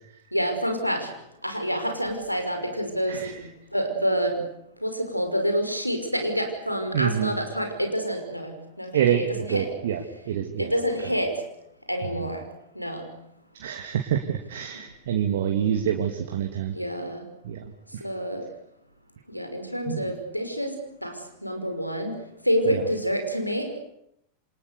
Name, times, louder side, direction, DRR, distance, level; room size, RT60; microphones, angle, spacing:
voice 1, 0.3-1.1 1.4-3.3 3.7-4.5 4.8-9.7 10.6-11.3 11.9-12.4 12.8-13.1 16.7-17.2 18.0-18.4 19.3-20.7 21.0-22.1 22.4-23.7, equal, 90° left, 5 dB, 5.7 m, -27 dB
voice 2, 6.9-7.3 8.9-10.0 10.3-10.7 13.6-16.7 17.4-17.6 19.9-20.0 22.7-22.8, right 9 dB, 60° right, 3 dB, 2.6 m, -26 dB
29.0 x 26.5 x 7.0 m, 0.78 s
figure-of-eight pair, 90°, 0 cm